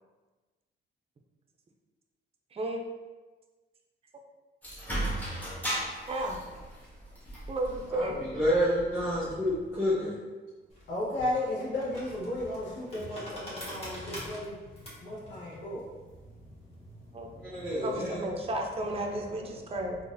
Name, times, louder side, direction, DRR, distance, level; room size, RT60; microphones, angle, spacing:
voice 1, 2.5-2.8 6.1-6.4 7.5-8.2 17.1-17.3 17.8-20.0, right 1 dB, 30° right, 2 dB, 0.5 m, -33 dB
sound 1, 4.6-9.9, right 1 dB, 10° left, 1.2 m, -37 dB
voice 2, 7.9-10.2 17.4-18.2, equal, 15° right, -7 dB, 1.0 m, -29 dB
sound 2, 10.7-17.4, equal, 30° left, 1.4 m, -45 dB
voice 3, 10.9-14.6 15.0-15.9 16.8-17.8 18.8-19.5, left 1 dB, 65° left, -6 dB, 1.1 m, -35 dB
3.8 x 2.5 x 2.5 m, 1.3 s
cardioid pair, 90°, 20 cm